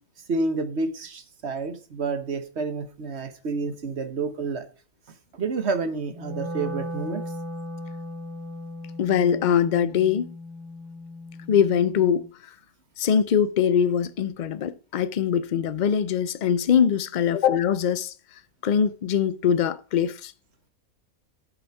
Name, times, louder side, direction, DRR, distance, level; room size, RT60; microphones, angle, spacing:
voice 1, 0.3-4.7 5.3-7.2, right 3 dB, 50° right, 1.3 m, -29 dB
Wind instrument woodwind instrument, 6.1-12.3, left 1 dB, 20° right, 1.2 m, -37 dB
voice 2, 9.0-10.3 11.5-12.3 13.0-18.1 18.6-20.3, left 8 dB, 70° left, 0.4 m, -22 dB
9.9 x 5.6 x 4.7 m
omnidirectional pair, 1.5 m